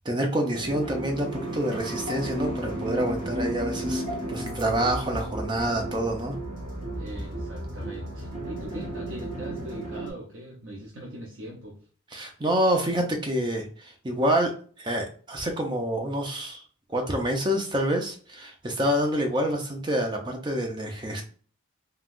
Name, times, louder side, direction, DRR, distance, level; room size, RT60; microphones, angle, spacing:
voice 1, 0.0-4.0 4.3-6.4 12.1-16.6 16.9-21.2, right 1 dB, 20° right, 2 dB, 0.5 m, -27 dB
sound 1, 0.5-10.1, right 1 dB, 45° right, 1.0 m, -33 dB
voice 2, 6.9-11.8, right 1 dB, 70° right, -3 dB, 0.8 m, -41 dB
3.6 x 2.3 x 2.4 m, 0.43 s
head